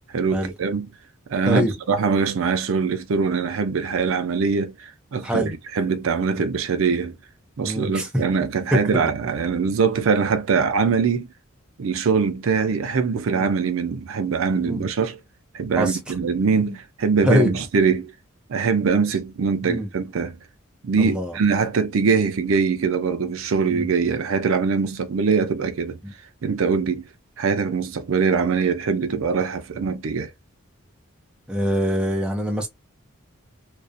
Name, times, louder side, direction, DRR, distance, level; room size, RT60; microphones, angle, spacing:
voice 1, 0.1-0.9 1.3-7.2 7.6-11.3 11.8-15.2 15.5-18.1 18.5-20.4 20.8-26.0 26.4-27.1 27.4-30.3, right 5 dB, 75° right, 0.5 m, -22 dB
voice 2, 7.6-8.1 8.7-8.8 13.3-13.5 14.6-14.8 15.8-16.0 16.7-16.8 17.2-17.5 19.6-19.9 21.0-21.4 23.7-23.9 26.0-26.1 31.5-32.7, equal, 5° right, 0.5 m, -23 dB
2.4 x 2.0 x 2.5 m
head